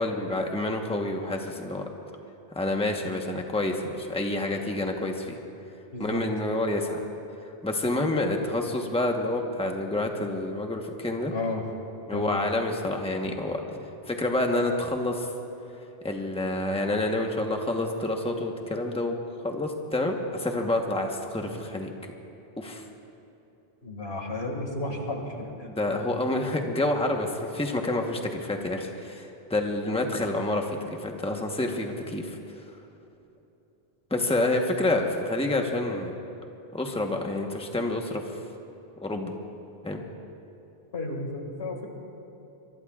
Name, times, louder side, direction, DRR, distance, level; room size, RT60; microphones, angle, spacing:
voice 1, 0.0-1.8 2.5-5.4 6.0-7.0 7.6-11.3 12.1-13.6 14.1-15.3 16.0-19.2 19.4-21.9 22.6-22.9 25.7-32.4 34.1-36.1 36.7-38.2 39.0-39.3 39.8-40.0, left 2 dB, 5° left, 2 dB, 1.1 m, -28 dB
voice 2, 5.9-6.2 11.3-11.6 12.1-12.5 23.8-25.7 40.9-41.9, left 2 dB, 90° left, 1 dB, 2.3 m, -33 dB
24.0 x 23.0 x 2.4 m, 3.0 s
omnidirectional pair, 1.0 m